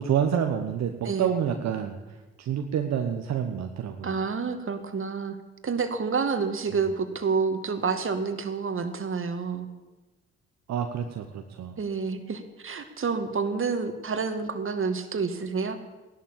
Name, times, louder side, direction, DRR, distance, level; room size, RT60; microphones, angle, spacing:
voice 1, 0.0-4.2 6.7-6.8 10.7-11.8, right 8 dB, 65° right, 5 dB, 1.3 m, -28 dB
voice 2, 4.0-5.4 5.6-9.7 11.8-15.8, right 5 dB, 45° right, 9 dB, 2.2 m, -28 dB
16.0 x 11.5 x 7.4 m, 1.2 s
hypercardioid pair, 45°, 30 cm